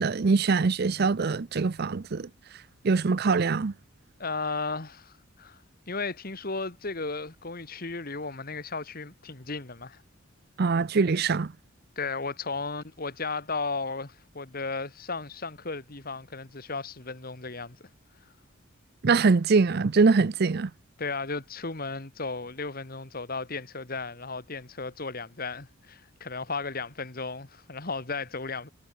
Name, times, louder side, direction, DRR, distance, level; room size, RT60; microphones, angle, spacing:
voice 1, 0.0-2.3 2.8-3.7 10.6-11.5 19.0-20.7, right 4 dB, 50° right, 0.5 m, -23 dB
voice 2, 4.2-5.6 5.9-10.0 12.0-17.9 21.0-28.7, left 4 dB, 45° left, 1.9 m, -35 dB
head